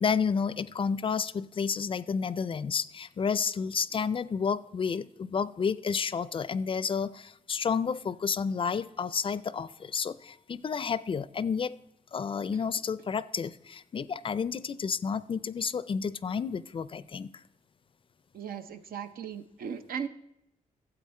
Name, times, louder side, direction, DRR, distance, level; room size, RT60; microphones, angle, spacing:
voice 1, 0.0-11.8 12.1-17.3, left 6 dB, 35° left, 17 dB, 0.4 m, -31 dB
voice 2, 18.3-20.1, right 7 dB, 90° right, 10 dB, 0.7 m, -37 dB
13.0 x 7.9 x 4.3 m, 0.81 s
cardioid pair, 110°, 15 cm